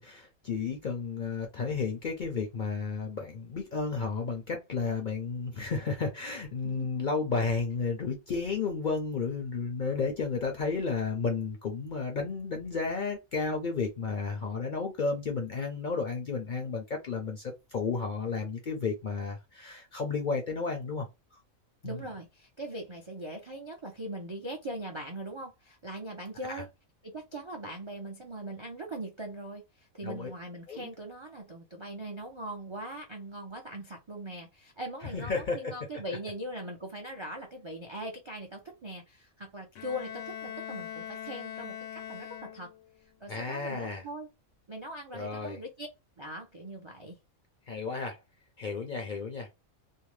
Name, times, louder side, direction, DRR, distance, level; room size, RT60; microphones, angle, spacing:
voice 1, 0.0-21.1 21.8-22.0 26.5-26.6 30.0-30.3 30.7-30.9 35.1-35.7 43.3-44.0 45.1-45.6 47.7-48.2 48.6-49.5, left 4 dB, 55° left, 0.5 m, -32 dB
voice 2, 21.8-26.7 27.0-41.8 42.1-42.7 43.2-44.3 44.7-45.9 46.2-47.2, right 1 dB, 50° right, 0.3 m, -41 dB
Bowed string instrument, 39.7-43.0, left 9 dB, 70° left, 0.9 m, -41 dB
2.6 x 2.1 x 3.1 m
omnidirectional pair, 1.4 m